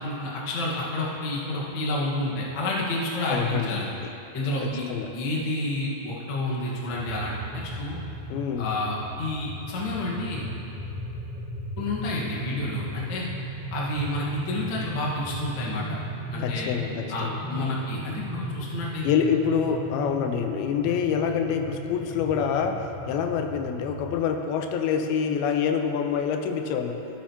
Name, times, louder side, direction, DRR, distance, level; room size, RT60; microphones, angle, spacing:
voice 1, 0.0-3.9 4.3-4.8 5.1-8.0 8.6-10.5 11.8-13.3 13.7-16.0 16.3-16.7 17.1-19.0, left 1 dB, 60° left, -5 dB, 1.3 m, -29 dB
voice 2, 3.3-3.7 4.0-4.1 4.6-5.1 8.3-8.8 16.4-17.4 19.0-27.0, left 7 dB, 85° left, 5 dB, 2.5 m, -26 dB
sound 1, 6.9-24.0, equal, 85° right, 0.9 m, -36 dB
15.0 x 8.4 x 2.8 m, 2.9 s
omnidirectional pair, 4.3 m